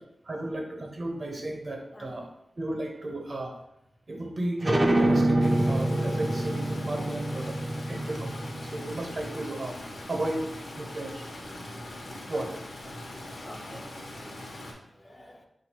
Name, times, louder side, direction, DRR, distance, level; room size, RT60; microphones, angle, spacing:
voice 1, 0.2-2.3 2.6-3.5 4.1-7.6 7.9-8.3 8.7-9.8 10.1-10.5 10.8-11.2 12.3-12.5 12.8-12.9, right 1 dB, 50° right, 1 dB, 0.9 m, -33 dB
sound 1, 4.6-9.9, right 1 dB, 30° right, 0.5 m, -27 dB
Stream, 5.4-14.7, left 1 dB, 75° left, 0.9 m, -41 dB
voice 2, 11.5-11.8 13.4-14.0 14.9-15.5, left 1 dB, 25° left, 3 dB, 0.4 m, -50 dB
4.1 x 2.6 x 4.5 m, 0.81 s
wide cardioid pair, 95°, 0 cm